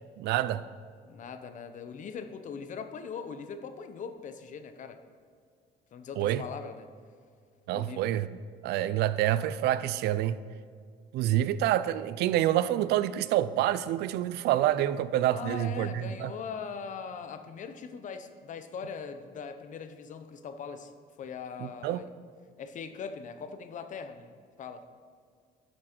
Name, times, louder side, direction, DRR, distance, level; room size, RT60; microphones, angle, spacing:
voice 1, 0.2-0.6 6.2-6.4 7.7-8.3 8.6-10.4 11.1-16.3 21.6-22.0, right 12 dB, 80° right, 0.4 m, -27 dB
voice 2, 1.1-5.0 5.9-6.9 7.7-8.1 15.3-20.9 21.2-22.1 22.6-24.3 24.6-24.8, left 6 dB, 50° left, 0.8 m, -40 dB
11.0 x 6.1 x 4.5 m
cardioid pair, 110°, 17 cm